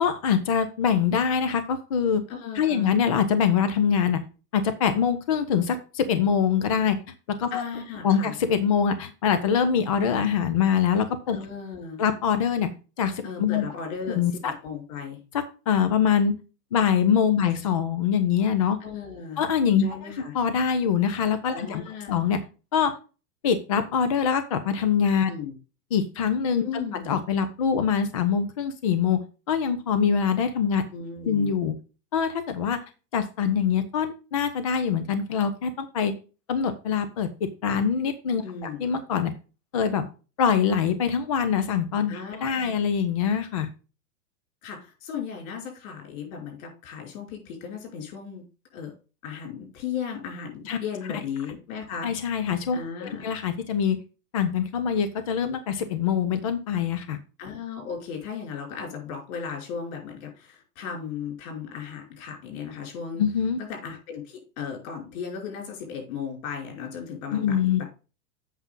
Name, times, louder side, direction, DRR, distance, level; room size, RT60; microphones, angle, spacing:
voice 1, 0.0-2.2 2.6-4.2 4.5-7.0 7.3-7.6 8.0-11.4 12.0-13.7 14.1-14.5 15.7-16.4 16.7-18.8 19.4-19.9 20.3-21.8 22.1-22.4 22.7-22.9 23.4-25.3 25.9-26.7 27.1-29.2 29.5-30.8 31.3-31.7 32.1-32.8 33.1-36.2 36.5-39.3 39.7-40.1 40.4-42.1 42.4-43.7 50.7-50.8 52.0-54.0 54.3-57.2 63.2-63.6 67.3-67.8, left 7 dB, 25° left, 10 dB, 0.3 m, -24 dB
voice 2, 2.3-2.9 7.5-8.3 11.3-12.0 13.2-15.2 17.4-17.5 18.8-19.4 19.8-20.4 21.5-22.2 25.3-25.5 26.6-27.2 30.9-31.5 38.4-38.8 42.1-42.8 44.6-48.4 48.7-48.9 49.2-53.3 57.4-63.2 63.6-67.9, left 6 dB, 55° left, 1 dB, 5.1 m, -36 dB
8.2 x 5.9 x 3.7 m, 0.33 s
hypercardioid pair, 130°, 49 cm